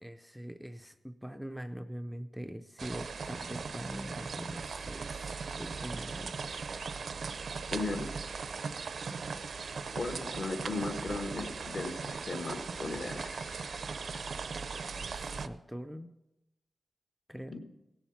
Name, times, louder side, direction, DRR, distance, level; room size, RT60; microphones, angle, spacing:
voice 1, 0.0-6.7 15.1-16.1 17.3-17.6, equal, ahead, 7 dB, 0.4 m, -43 dB
sound 1, 2.8-15.5, right 5 dB, 60° right, 0.5 m, -39 dB
voice 2, 7.7-8.1 9.9-13.8 14.1-14.2 17.5-17.6, left 2 dB, 55° left, 6 dB, 1.3 m, -37 dB
17.0 x 7.3 x 5.6 m, 0.96 s
wide cardioid pair, 155°, 0 cm